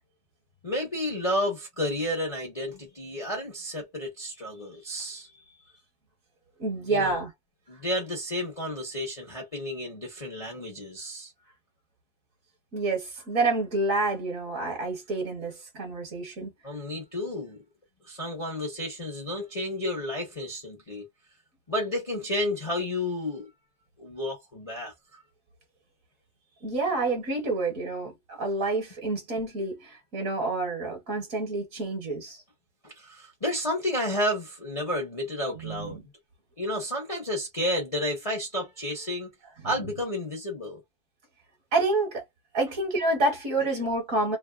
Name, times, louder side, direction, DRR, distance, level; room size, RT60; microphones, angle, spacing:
voice 1, 0.6-5.3 6.9-7.2 7.7-11.3 16.6-17.6 18.1-21.1 21.7-23.5 24.0-25.2 32.8-36.0 36.6-39.3 39.6-40.8, left 1 dB, 25° left, 0.8 m, -31 dB
voice 2, 6.6-7.3 12.7-16.5 26.6-32.4 35.5-36.0 41.7-42.2 42.5-44.4, right 2 dB, 50° right, 1.6 m, -28 dB
3.4 x 2.0 x 2.3 m
omnidirectional pair, 2.0 m